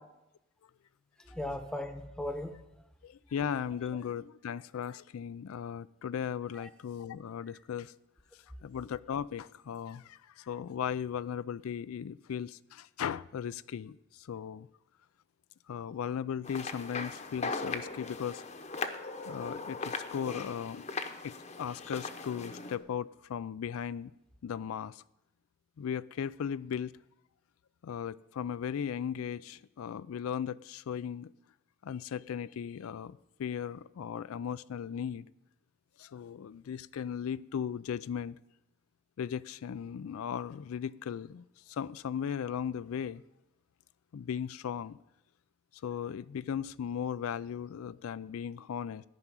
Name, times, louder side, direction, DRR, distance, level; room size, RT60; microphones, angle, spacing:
voice 1, 1.2-2.9 6.5-6.7 7.5-7.6, left 1 dB, 5° left, 0.9 m, -39 dB
voice 2, 3.0-7.9 8.6-14.7 15.7-18.4 19.2-20.8 21.2-24.1 24.4-25.0 25.8-26.9 27.8-31.3 31.8-35.3 36.0-38.4 39.2-43.2 44.1-45.0 45.8-49.0, left 8 dB, 90° left, 0.4 m, -37 dB
sound 1, 16.4-22.8, left 4 dB, 30° left, 0.8 m, -39 dB
13.5 x 6.0 x 9.8 m
head